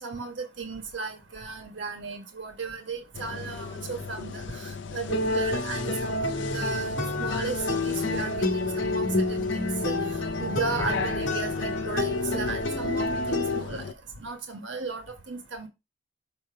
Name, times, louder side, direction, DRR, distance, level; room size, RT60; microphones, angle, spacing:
voice 1, 0.0-6.9 7.2-8.5 8.7-9.0 9.3-9.9 10.4-13.8 14.2-15.7, right 4 dB, 70° right, 1.3 m, -35 dB
sound 1, 3.1-13.9, left 5 dB, 65° left, 0.5 m, -37 dB
sound 2, 5.1-13.6, left 2 dB, 85° left, 1.3 m, -28 dB
6.5 x 2.9 x 5.7 m
head